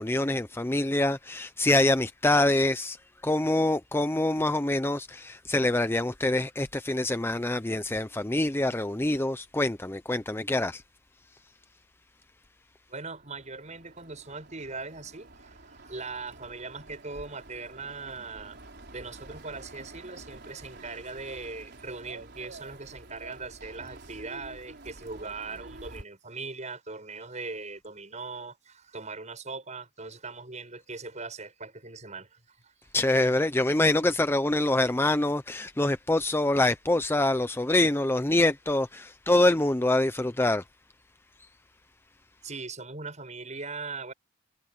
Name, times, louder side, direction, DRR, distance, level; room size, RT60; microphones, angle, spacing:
voice 1, 0.0-3.0 3.2-10.8 32.9-40.6, left 2 dB, 10° left, 0.6 m, -25 dB
voice 2, 12.9-18.6 18.9-32.7 42.4-44.1, right 3 dB, 40° right, 6.5 m, -40 dB
sound 1, 13.0-26.0, right 2 dB, 60° right, 4.6 m, -48 dB
head